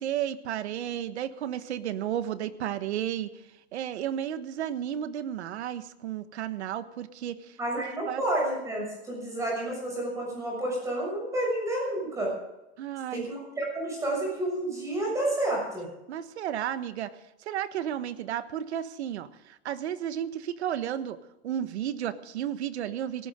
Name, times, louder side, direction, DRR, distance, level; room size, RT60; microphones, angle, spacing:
voice 1, 0.0-3.3 3.7-7.3 8.1-8.2 12.8-13.2 16.1-17.1 17.5-21.2 21.4-23.3, right 10 dB, 90° right, 12 dB, 1.4 m, -33 dB
voice 2, 7.6-12.3 13.1-15.9, right 1 dB, 10° right, -2 dB, 6.7 m, -30 dB
18.0 x 18.0 x 3.8 m, 0.95 s
supercardioid pair, 180°, 32 cm